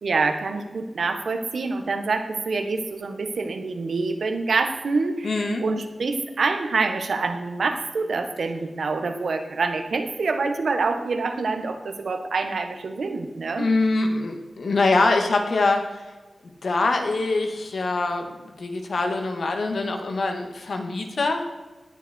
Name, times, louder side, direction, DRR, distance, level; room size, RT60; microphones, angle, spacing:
voice 1, 0.0-13.7, right 4 dB, 85° right, 7 dB, 1.8 m, -26 dB
voice 2, 5.2-5.6 13.6-16.0 16.6-21.4, left 3 dB, 75° left, 4 dB, 2.3 m, -24 dB
18.0 x 10.5 x 4.7 m, 1.3 s
wide cardioid pair, 105°, 0 cm